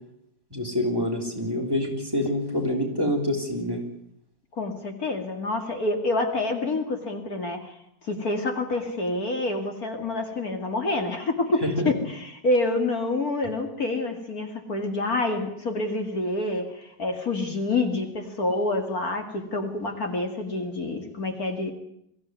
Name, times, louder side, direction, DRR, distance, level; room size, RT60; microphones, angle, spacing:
voice 1, 0.5-3.8 11.6-11.9, left 1 dB, 10° right, 3 dB, 4.0 m, -26 dB
voice 2, 4.6-21.7, left 2 dB, 55° left, 5 dB, 2.8 m, -27 dB
23.0 x 15.0 x 9.6 m, 0.75 s
omnidirectional pair, 1.9 m